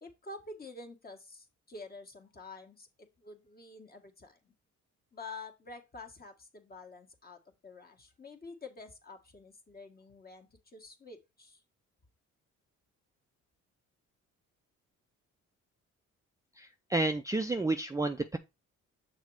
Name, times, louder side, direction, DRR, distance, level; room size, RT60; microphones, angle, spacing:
voice 1, 0.0-4.5 5.1-11.6, left 3 dB, 30° left, 1.6 m, -48 dB
voice 2, 16.6-18.4, right 2 dB, 10° right, 0.4 m, -31 dB
6.5 x 4.1 x 4.7 m
cardioid pair, 90°, 30 cm